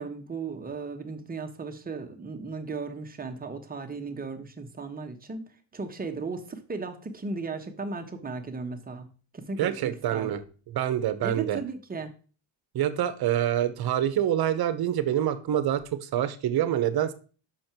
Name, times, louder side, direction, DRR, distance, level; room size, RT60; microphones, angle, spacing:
voice 1, 0.0-5.4 5.7-9.1 9.3-10.3 11.2-12.1, right 4 dB, 20° right, 4 dB, 1.0 m, -36 dB
voice 2, 9.6-10.4 10.7-11.6 12.7-17.1, right 11 dB, 55° right, 12 dB, 0.9 m, -26 dB
6.4 x 5.8 x 4.4 m, 0.38 s
cardioid pair, 130°, 46 cm